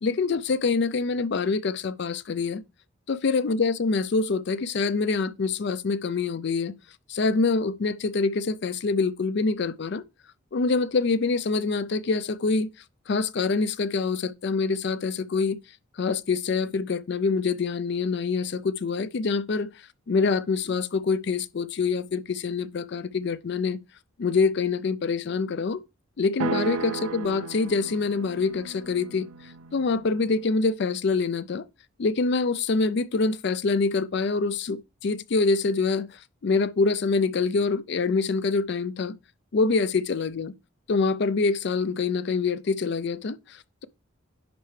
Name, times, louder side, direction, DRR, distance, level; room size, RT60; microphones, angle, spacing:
voice 1, 0.0-2.6 3.1-6.7 7.1-10.0 10.5-12.7 13.1-15.6 16.0-19.7 20.1-23.8 24.2-25.8 26.2-29.3 29.7-31.7 32.0-36.1 36.4-39.2 39.5-40.5 40.9-43.9, left 4 dB, 50° left, 0.4 m, -25 dB
sound 1, 26.4-30.5, right 5 dB, 75° right, 0.4 m, -35 dB
10.5 x 4.4 x 3.2 m
head